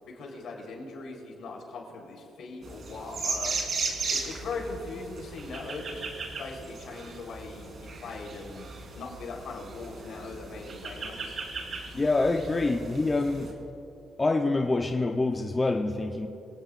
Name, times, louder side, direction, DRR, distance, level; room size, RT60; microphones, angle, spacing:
voice 1, 0.0-3.6 4.1-6.0 6.4-8.7 8.9-11.4, left 3 dB, 70° left, -1 dB, 4.1 m, -40 dB
sound 1, 2.6-13.5, right 4 dB, 55° right, 3.2 m, -37 dB
voice 2, 11.9-13.6 14.2-16.3, left 2 dB, 25° left, 2 dB, 0.9 m, -26 dB
25.5 x 18.0 x 2.6 m, 2.8 s
cardioid pair, 90°, 0 cm